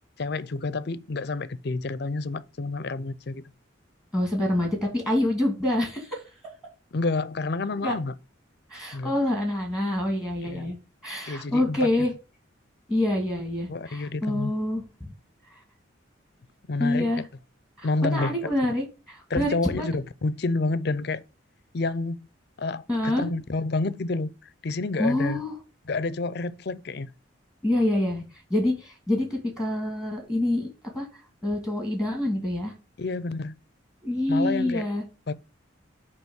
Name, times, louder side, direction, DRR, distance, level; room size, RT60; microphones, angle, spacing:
voice 1, 0.2-3.4 6.9-8.1 8.9-9.1 10.4-10.8 11.3-11.9 13.7-14.5 16.7-17.2 17.8-18.3 19.3-21.2 21.7-22.3 22.6-24.3 24.6-25.4 25.9-27.1 33.0-33.5 34.3-34.8 35.3-35.4, left 3 dB, 55° left, 0.5 m, -29 dB
voice 2, 4.1-6.2 7.8-7.9 8.7-10.8 11.0-12.1 12.9-15.1 16.8-17.2 17.8-19.9 22.9-23.3 25.0-25.5 27.6-28.2 28.5-30.7 30.9-31.1 31.4-32.7 34.0-35.0, left 1 dB, 5° right, 2.0 m, -26 dB
8.9 x 3.0 x 6.3 m
head